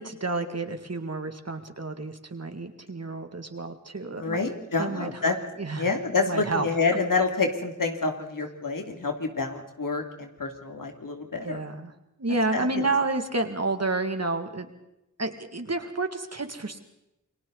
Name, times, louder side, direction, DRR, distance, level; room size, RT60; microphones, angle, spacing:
voice 1, 0.0-4.5 4.8-5.9 6.2-6.7 11.4-11.9 12.2-14.7 15.2-16.8, right 3 dB, 50° right, 6 dB, 2.3 m, -30 dB
voice 2, 4.2-5.3 5.8-11.6 12.5-12.9, left 4 dB, 90° left, 4 dB, 2.8 m, -28 dB
29.0 x 22.5 x 4.1 m, 0.89 s
wide cardioid pair, 65°, 32 cm